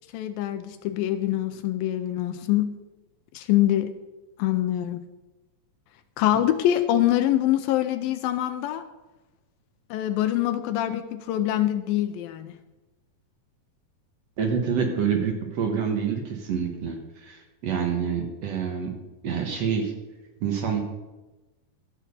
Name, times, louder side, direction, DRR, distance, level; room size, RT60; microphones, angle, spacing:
voice 1, 0.1-2.8 3.3-4.0 4.4-5.0 6.2-8.8 9.9-12.6, left 13 dB, 80° left, 10 dB, 2.3 m, -24 dB
voice 2, 14.4-19.0 19.2-19.9 20.4-20.8, right 6 dB, 60° right, 3 dB, 1.9 m, -27 dB
12.5 x 7.4 x 6.7 m, 1.1 s
omnidirectional pair, 4.3 m